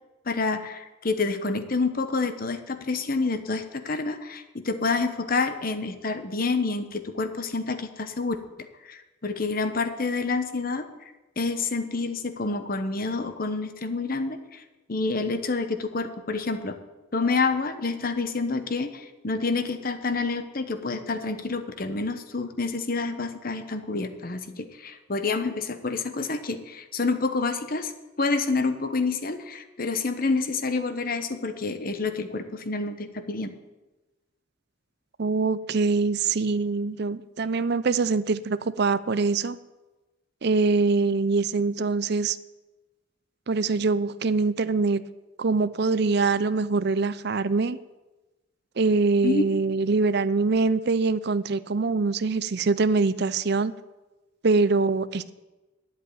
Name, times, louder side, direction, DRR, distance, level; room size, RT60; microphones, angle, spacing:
voice 1, 0.3-10.9 11.4-14.6 14.9-16.8 17.1-27.9 28.2-33.5 49.2-49.5, left 3 dB, 45° left, 9 dB, 1.0 m, -28 dB
voice 2, 35.2-39.6 40.4-42.4 43.5-45.0 45.4-47.8 48.8-53.7 54.4-55.3, right 4 dB, 55° right, 15 dB, 0.6 m, -24 dB
9.6 x 8.3 x 9.3 m, 1.1 s
head